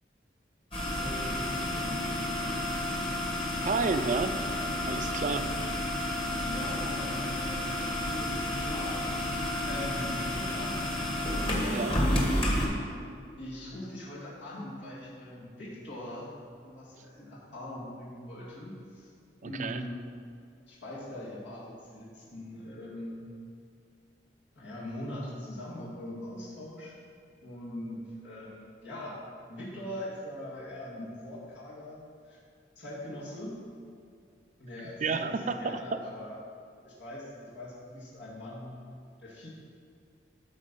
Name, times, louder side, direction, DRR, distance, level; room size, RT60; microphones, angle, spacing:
sound 1, 0.7-12.7, left 1 dB, 30° left, 1.5 m, -31 dB
voice 1, 0.8-2.1 6.3-9.4 9.6-10.8 11.3-11.9 13.4-16.3 16.6-19.1 19.4-20.0 20.7-23.3 24.6-26.9 27.4-29.1 29.5-32.4 32.8-33.6 34.6-36.4 36.8-38.8 39.2-39.5, left 1 dB, 80° left, -7 dB, 2.2 m, -42 dB
voice 2, 3.6-4.4 4.9-5.5 11.7-12.0 19.4-19.8 34.8-36.0, right 4 dB, 45° right, 9 dB, 0.5 m, -31 dB
12.5 x 4.4 x 5.4 m, 2.3 s
head